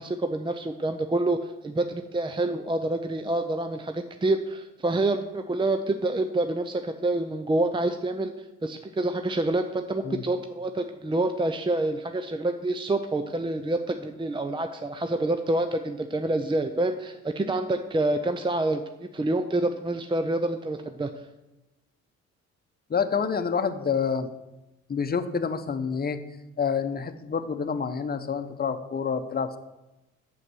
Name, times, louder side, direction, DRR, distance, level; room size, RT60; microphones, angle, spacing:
voice 1, 0.0-21.1, right 2 dB, 15° right, 7 dB, 0.5 m, -27 dB
voice 2, 22.9-24.3 24.9-26.2 26.6-29.6, left 6 dB, 30° left, 9 dB, 0.9 m, -28 dB
8.2 x 7.4 x 6.2 m, 0.99 s
cardioid pair, 90°, 30 cm